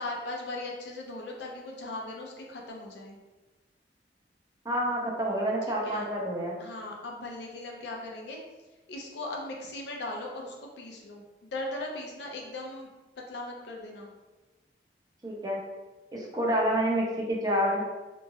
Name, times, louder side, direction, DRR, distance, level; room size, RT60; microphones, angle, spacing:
voice 1, 0.0-3.2 5.7-6.0 6.6-8.4 8.9-12.9 13.3-14.1, left 2 dB, 80° left, -1 dB, 0.5 m, -38 dB
voice 2, 4.6-6.6 15.2-15.6 16.1-17.8, equal, 20° right, -3 dB, 0.5 m, -28 dB
2.9 x 2.3 x 2.7 m, 1.2 s
head